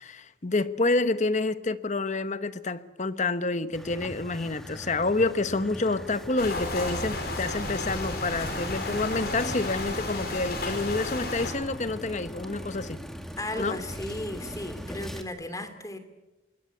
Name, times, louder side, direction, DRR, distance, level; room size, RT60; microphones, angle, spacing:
voice 1, 0.0-13.0 13.6-13.8, left 3 dB, 45° left, 1.0 m, -28 dB
sound 1, 3.7-15.2, equal, ahead, 2.1 m, -40 dB
sound 2, 6.4-11.5, left 2 dB, 60° left, 5.6 m, -33 dB
voice 2, 13.4-16.0, left 1 dB, 20° left, 2.8 m, -35 dB
24.5 x 21.5 x 8.3 m
head